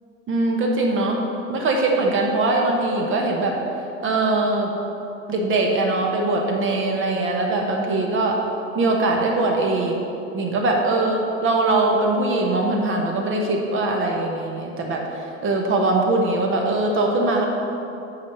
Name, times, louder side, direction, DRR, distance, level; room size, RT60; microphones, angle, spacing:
voice 1, 0.3-1.2 1.5-3.6 4.0-4.7 5.3-8.4 8.7-10.0 10.3-15.0 15.4-17.4, right 2 dB, 30° right, 1 dB, 1.2 m, -21 dB
9.4 x 4.2 x 5.8 m, 2.9 s
figure-of-eight pair, 70°, 39 cm